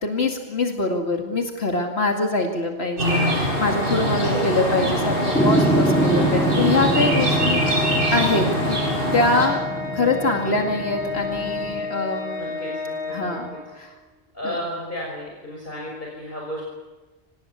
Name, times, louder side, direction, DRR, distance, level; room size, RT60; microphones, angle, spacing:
voice 1, 0.0-8.8 9.1-9.6 9.9-12.5 13.1-13.9 14.4-14.6, left 2 dB, 85° left, 2 dB, 2.6 m, -24 dB
sound 1, 3.0-9.5, equal, 60° right, 6.3 m, -23 dB
Organ, 3.1-13.9, left 3 dB, 25° left, 6.0 m, -32 dB
voice 2, 4.2-4.5 12.4-13.4 14.3-16.6, equal, 50° left, -2 dB, 6.3 m, -33 dB
sound 2, 5.3-11.8, right 1 dB, 5° left, 2.5 m, -25 dB
25.0 x 20.5 x 8.3 m, 1.2 s
omnidirectional pair, 1.1 m